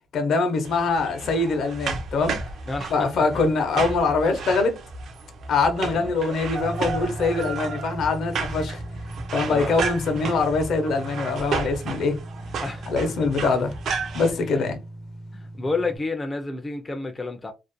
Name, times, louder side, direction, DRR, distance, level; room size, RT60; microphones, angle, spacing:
voice 1, 0.1-2.4 2.9-4.8 5.5-8.8 9.3-12.2 12.9-13.7 14.1-14.8, left 4 dB, 65° left, 0.6 m, -23 dB
sound 1, 0.6-14.3, right 4 dB, 60° right, 0.4 m, -33 dB
voice 2, 2.7-3.4 5.9-6.1 9.5-9.8 12.6-12.8 14.3-14.7 15.3-17.5, left 3 dB, 15° left, 0.3 m, -30 dB
sound 2, 6.6-16.0, right 1 dB, 90° right, 0.7 m, -38 dB
2.4 x 2.1 x 2.5 m
cardioid pair, 145°, 0 cm